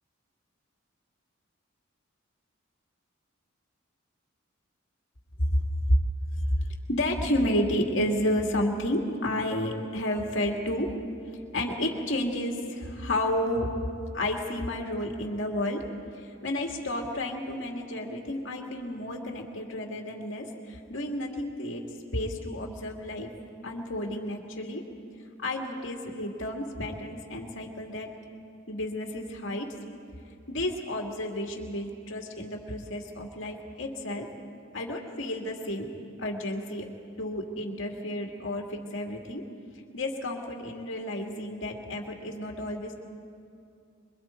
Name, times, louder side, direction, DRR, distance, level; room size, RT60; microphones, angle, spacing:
voice 1, 5.5-6.0 6.9-10.9 11.5-13.7 14.1-15.8 16.1-21.8 22.1-23.3 23.6-24.8 25.4-28.1 28.7-29.7 30.5-34.3 34.7-35.9 36.2-36.9 37.2-39.4 39.9-42.9, left 1 dB, 60° left, 1 dB, 2.4 m, -31 dB
26.5 x 22.5 x 4.5 m, 2.5 s
head